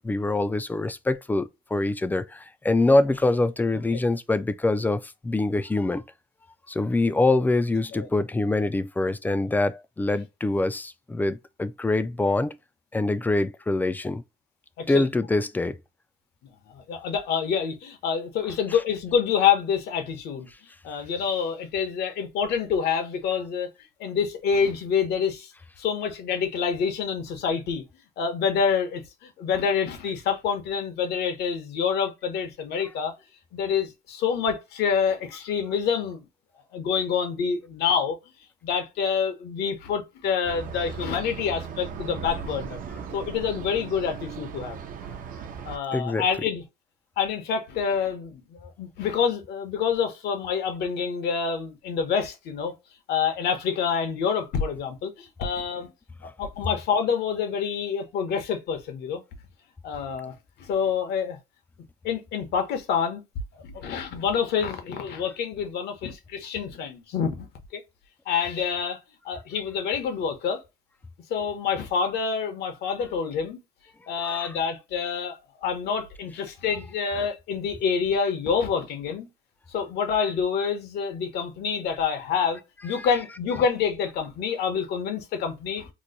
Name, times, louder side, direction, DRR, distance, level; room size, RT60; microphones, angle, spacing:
voice 1, 0.0-6.0 6.7-12.6 12.9-14.2 14.9-15.8 45.9-46.2 74.2-74.6 83.0-83.1, left 2 dB, 10° left, 0.3 m, -24 dB
voice 2, 16.7-20.5 20.8-23.7 24.0-25.5 25.8-27.8 28.2-33.1 33.5-36.2 36.7-38.2 38.6-42.8 43.1-44.8 45.6-46.6 47.2-52.7 53.1-55.9 56.2-59.2 59.8-61.4 62.0-63.2 63.6-67.5 67.7-67.8 68.3-69.0 69.2-70.6 71.3-73.6 74.1-79.3 79.7-85.9, left 6 dB, 75° left, 1.0 m, -27 dB
sound 1, 40.4-45.8, right 6 dB, 55° right, 0.6 m, -37 dB
3.0 x 2.2 x 3.9 m
cardioid pair, 110°, 17 cm